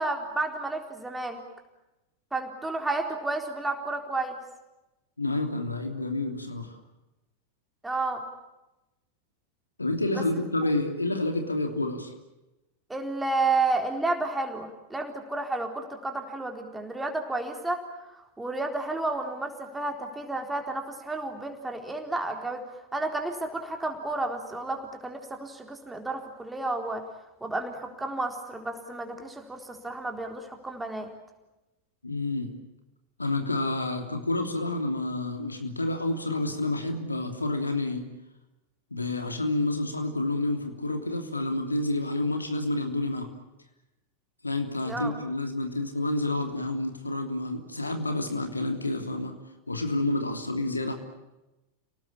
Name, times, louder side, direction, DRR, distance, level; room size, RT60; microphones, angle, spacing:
voice 1, 0.0-1.4 2.3-4.4 7.8-8.2 10.2-10.3 12.9-17.8 18.2-22.6 22.9-27.0 27.4-31.1 44.8-45.1, right 2 dB, 10° right, 4 dB, 4.0 m, -31 dB
voice 2, 5.2-6.7 9.8-12.1 32.0-32.5 33.2-38.0 38.9-43.3 44.4-49.3 49.7-50.9, left 2 dB, 80° left, 5 dB, 3.0 m, -29 dB
29.5 x 19.0 x 8.8 m, 0.99 s
figure-of-eight pair, 90°, 0 cm